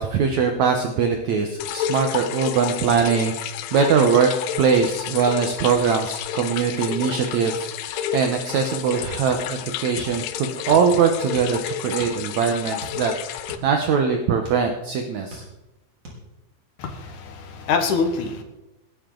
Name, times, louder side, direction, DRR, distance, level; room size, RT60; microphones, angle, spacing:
voice 1, 0.0-4.3 4.6-15.4, right 6 dB, 75° right, 4 dB, 1.7 m, -22 dB
sound 1, 1.6-13.6, left 10 dB, 90° left, 2.8 m, -31 dB
sound 2, 10.0-10.9 11.2-12.3 12.8-14.7 15.1-15.8 16.1-16.2, equal, 40° right, 4.6 m, -40 dB
voice 2, 16.8-18.4, left 5 dB, 60° left, 6 dB, 2.3 m, -25 dB
20.0 x 11.5 x 3.9 m, 0.97 s
omnidirectional pair, 4.7 m